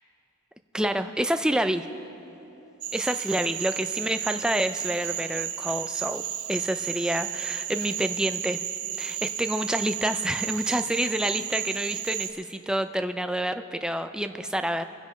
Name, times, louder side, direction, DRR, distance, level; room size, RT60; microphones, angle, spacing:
voice 1, 0.7-1.9 2.9-6.2 6.5-8.6 9.0-14.8, right 1 dB, 5° right, 8 dB, 0.4 m, -28 dB
Cricket / Frog, 2.8-12.3, right 11 dB, 85° right, 0.8 m, -33 dB
29.0 x 10.5 x 3.1 m, 2.9 s
head